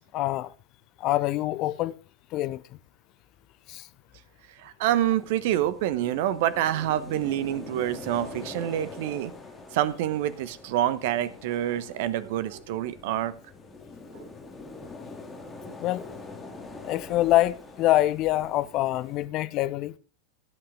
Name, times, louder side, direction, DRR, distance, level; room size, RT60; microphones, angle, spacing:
voice 1, 0.1-0.5 1.0-2.0 2.3-2.6 3.7-3.9 15.8-16.1 16.8-19.9, left 15 dB, 40° left, 0.8 m, -25 dB
voice 2, 4.6-9.3 9.7-13.3 14.1-14.2, right 12 dB, 50° right, 1.1 m, -27 dB
sound 1, 4.8-19.3, left 3 dB, 15° left, 2.9 m, -44 dB
16.5 x 8.8 x 3.8 m
figure-of-eight pair, 90°, 0 cm